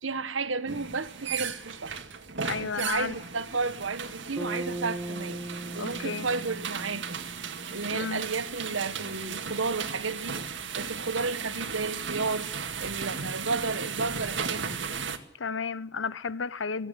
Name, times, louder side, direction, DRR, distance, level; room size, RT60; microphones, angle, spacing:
voice 1, 0.0-2.0 2.6-5.4 5.7-7.2 7.7-10.4 10.8-12.5 12.8-14.8, right 4 dB, 85° right, 1.4 m, -32 dB
sound 1, 0.7-15.2, right 6 dB, 65° right, 2.0 m, -36 dB
voice 2, 2.4-3.1 5.8-6.3 7.9-8.2 15.4-16.9, left 5 dB, 80° left, 0.9 m, -32 dB
Bass guitar, 4.4-8.4, right 1 dB, 5° left, 2.1 m, -39 dB
17.0 x 16.0 x 9.8 m
head